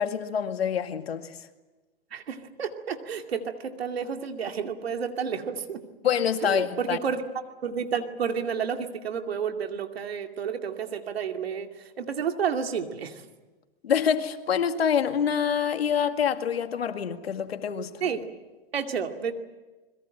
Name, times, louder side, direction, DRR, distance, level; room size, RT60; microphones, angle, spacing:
voice 1, 0.0-1.4 6.0-7.0 13.8-17.9, left 8 dB, 85° left, 2.1 m, -26 dB
voice 2, 2.1-5.8 6.4-7.2 7.6-13.2 18.0-18.3 18.7-19.3, right 7 dB, 85° right, 2.5 m, -31 dB
27.0 x 21.5 x 7.8 m
hypercardioid pair, 120°, 30 cm